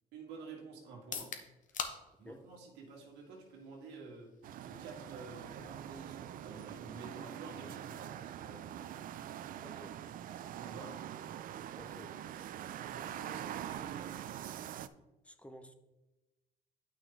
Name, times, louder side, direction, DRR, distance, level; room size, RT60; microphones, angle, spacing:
voice 1, 0.1-1.3 2.2-4.3 4.6-8.9 10.5-10.9 12.9-14.1, right 4 dB, 90° right, 1.9 m, -50 dB
sound 1, 1.0-14.8, left 6 dB, 50° left, 0.9 m, -51 dB
sound 2, 4.4-14.9, right 11 dB, 55° right, 0.4 m, -44 dB
voice 2, 9.6-10.0 11.8-12.3 15.2-15.7, equal, 5° left, 0.6 m, -52 dB
9.3 x 5.9 x 3.4 m
cardioid pair, 110°, 17 cm